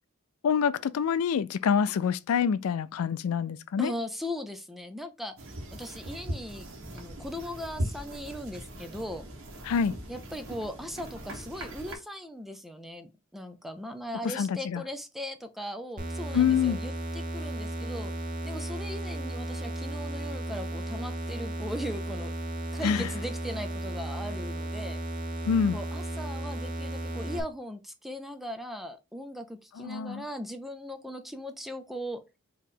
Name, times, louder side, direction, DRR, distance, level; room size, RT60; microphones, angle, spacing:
voice 1, 0.4-3.9 9.7-10.0 14.3-14.8 16.3-16.8 22.8-23.1 25.5-25.8 29.8-30.2, left 7 dB, 75° left, 0.3 m, -26 dB
voice 2, 3.8-6.7 6.9-9.3 10.1-18.1 18.4-22.3 22.7-25.0 25.7-32.2, equal, ahead, 0.5 m, -39 dB
sound 1, 5.4-12.0, right 1 dB, 65° right, 1.4 m, -39 dB
sound 2, 16.0-27.4, right 1 dB, 35° right, 0.9 m, -35 dB
4.6 x 3.0 x 3.8 m
head